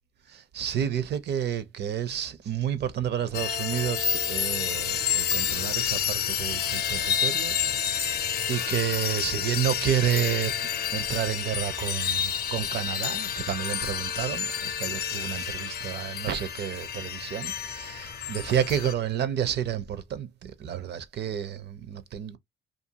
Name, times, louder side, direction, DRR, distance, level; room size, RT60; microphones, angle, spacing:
voice 1, 0.3-8.2 8.5-10.5 10.9-22.4, right 10 dB, 60° right, 0.6 m, -30 dB
sound 1, 3.3-18.9, left 8 dB, 55° left, 0.6 m, -29 dB
2.6 x 2.4 x 2.8 m
cardioid pair, 90°, 20 cm